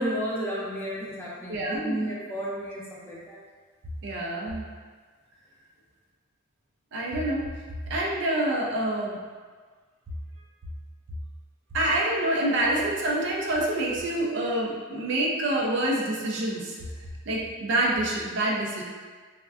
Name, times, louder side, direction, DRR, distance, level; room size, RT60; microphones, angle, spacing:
voice 1, 0.0-3.4, equal, 10° left, -6 dB, 0.4 m, -32 dB
voice 2, 1.5-2.1 4.0-4.7 6.9-7.5 7.9-9.2 11.7-18.8, right 1 dB, 60° right, -2 dB, 0.4 m, -27 dB
3.4 x 2.1 x 2.4 m, 1.5 s
head